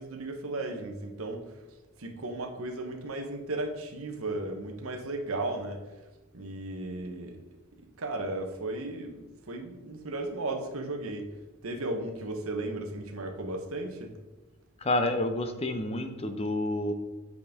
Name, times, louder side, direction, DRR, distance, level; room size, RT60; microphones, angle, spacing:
voice 1, 0.0-1.4 2.0-5.8 6.3-7.4 8.0-11.3 11.6-14.1, right 2 dB, 75° right, 4 dB, 1.0 m, -35 dB
voice 2, 14.8-16.9, left 1 dB, 25° left, 7 dB, 0.5 m, -29 dB
8.4 x 5.2 x 3.6 m, 1.1 s
head